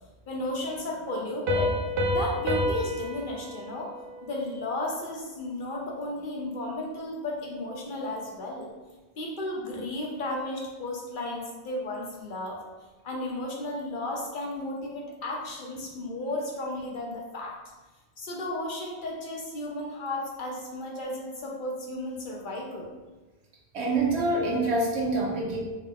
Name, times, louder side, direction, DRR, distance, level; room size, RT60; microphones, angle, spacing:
voice 1, 0.3-1.8 2.1-3.9 4.2-8.7 9.2-12.6 13.0-17.5 18.2-22.9, left 1 dB, 55° left, -2 dB, 0.7 m, -34 dB
Piano, 1.5-4.9, equal, 55° right, 0.6 m, -29 dB
voice 2, 23.7-25.6, right 2 dB, 80° right, -4 dB, 1.1 m, -26 dB
3.5 x 2.2 x 3.5 m, 1.2 s
omnidirectional pair, 1.1 m